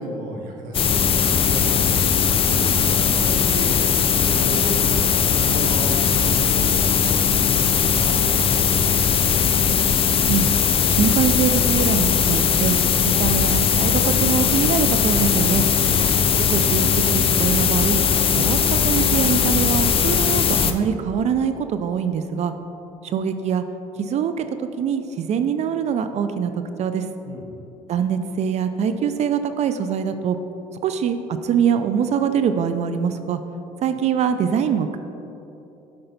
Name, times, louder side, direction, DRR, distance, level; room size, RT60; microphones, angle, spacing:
voice 1, 0.0-1.7 2.1-3.8 4.1-8.9 27.2-27.7, right 2 dB, 70° right, 0 dB, 1.0 m, -34 dB
sound 1, 0.7-20.7, left 7 dB, 40° left, 0.5 m, -19 dB
voice 2, 10.9-12.8 13.0-15.7 16.5-18.0 18.4-22.5 23.0-23.6 24.0-24.4 24.8-26.5 26.8-27.1 27.9-30.4 30.8-31.2 31.4-33.4 33.8-35.0, right 7 dB, 50° right, 9 dB, 0.4 m, -23 dB
7.8 x 5.4 x 4.0 m, 3.0 s
supercardioid pair, 85°, 14 cm